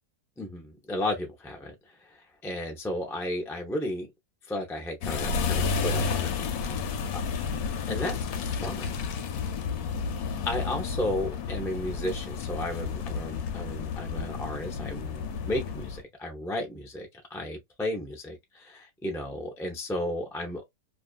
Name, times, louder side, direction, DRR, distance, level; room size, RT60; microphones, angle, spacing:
voice 1, 0.4-4.1 4.5-6.9 7.9-8.2 8.5-8.9 10.5-20.6, left 1 dB, 5° left, 0.3 m, -34 dB
sound 1, 5.0-16.0, left 5 dB, 85° left, 1.1 m, -31 dB
2.6 x 2.4 x 2.3 m
omnidirectional pair, 1.6 m